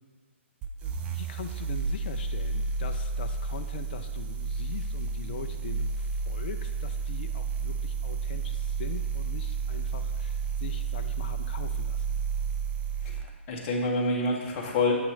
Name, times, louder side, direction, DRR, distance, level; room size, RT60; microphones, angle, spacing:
sound 1, 0.6-13.3, right 5 dB, 15° right, 0.3 m, -31 dB
voice 1, 0.8-12.2, left 7 dB, 45° left, 7 dB, 0.4 m, -42 dB
voice 2, 13.0-14.9, left 2 dB, 30° left, -2 dB, 1.1 m, -28 dB
7.3 x 3.0 x 5.7 m, 1.5 s
hypercardioid pair, 135°, 7 cm